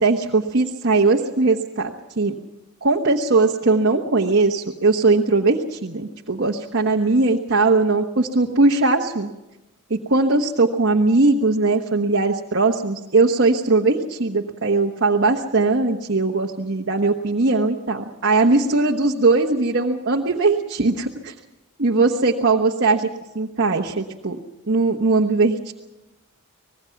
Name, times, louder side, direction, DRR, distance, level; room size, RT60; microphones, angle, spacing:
voice 1, 0.0-2.3 2.8-9.3 9.9-21.3 21.8-23.1 23.3-24.4 24.7-25.7, right 3 dB, 55° right, 1 dB, 1.2 m, -19 dB
25.5 x 20.0 x 5.9 m, 1.0 s
head